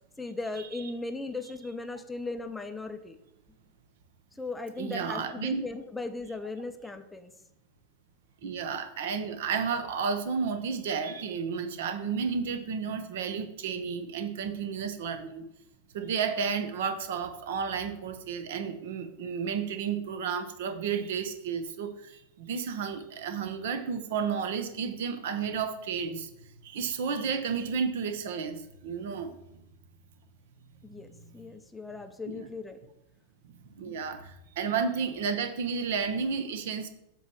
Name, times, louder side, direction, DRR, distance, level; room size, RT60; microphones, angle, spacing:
voice 1, 0.2-3.2 4.3-7.3 8.4-8.5 30.8-32.8 33.9-34.0, left 3 dB, 10° left, 7 dB, 0.6 m, -38 dB
voice 2, 4.8-5.6 8.4-15.4 15.9-26.3 26.6-29.3 32.3-32.5 33.7-36.9, right 6 dB, 55° right, 9 dB, 0.8 m, -32 dB
7.9 x 3.1 x 6.3 m, 0.83 s
figure-of-eight pair, 90°, 0 cm